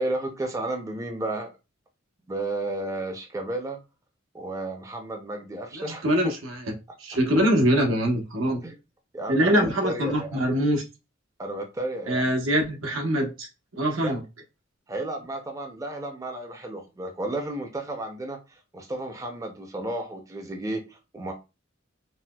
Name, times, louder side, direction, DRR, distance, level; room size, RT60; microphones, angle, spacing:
voice 1, 0.0-1.5 2.3-3.8 4.3-6.3 8.6-8.8 9.1-10.5 11.4-12.3 14.0-14.2 14.9-21.3, right 2 dB, 15° right, 0.5 m, -33 dB
voice 2, 5.7-6.7 7.0-8.6 9.3-10.8 12.1-13.5 13.7-14.2, equal, 80° right, 0.9 m, -23 dB
4.1 x 2.1 x 2.2 m
head